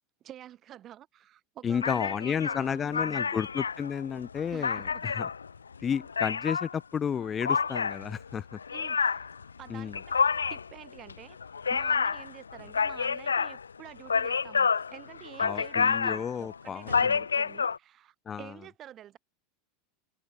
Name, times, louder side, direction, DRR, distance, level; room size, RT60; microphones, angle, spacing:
voice 1, 0.2-3.4 4.5-5.1 8.7-9.3 9.6-10.1 10.5-11.4 11.7-19.2, right 11 dB, 40° right, 6.6 m, -49 dB
voice 2, 1.6-5.3 5.8-8.6 9.7-10.0 15.4-17.2 18.2-18.5, left 7 dB, 30° left, 1.6 m, -32 dB
sound 1, 1.8-6.7 7.4-17.8, left 5 dB, 85° left, 0.3 m, -29 dB
open air
figure-of-eight pair, 85°, 0 cm